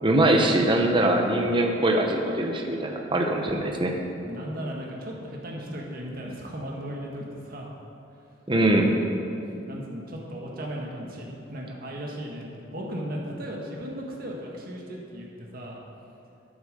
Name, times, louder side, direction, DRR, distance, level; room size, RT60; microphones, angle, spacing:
voice 1, 0.0-3.9 8.5-8.9, right 1 dB, 25° right, 2 dB, 1.0 m, -22 dB
voice 2, 4.2-7.7 9.7-15.8, equal, 50° right, -1 dB, 1.8 m, -36 dB
9.0 x 8.3 x 6.8 m, 2.7 s
head